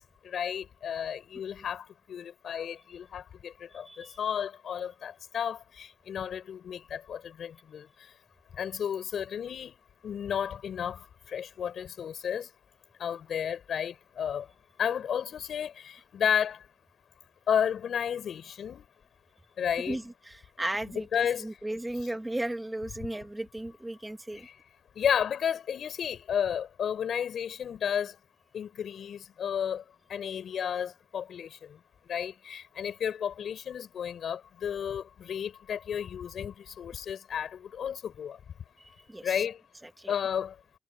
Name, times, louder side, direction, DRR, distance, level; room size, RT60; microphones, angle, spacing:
voice 1, 0.2-7.9 8.5-9.7 10.0-12.5 13.0-14.5 14.8-16.6 17.5-18.8 19.6-20.0 20.9-21.5 24.3-24.5 25.0-28.2 28.5-29.8 30.1-31.8 32.1-38.4 39.2-39.6 40.1-40.6, left 8 dB, 60° left, 6.1 m, -32 dB
voice 2, 3.7-4.2 19.9-24.5 38.8-39.4 39.8-40.1, right 1 dB, 10° right, 2.1 m, -36 dB
cardioid pair, 90°, 0 cm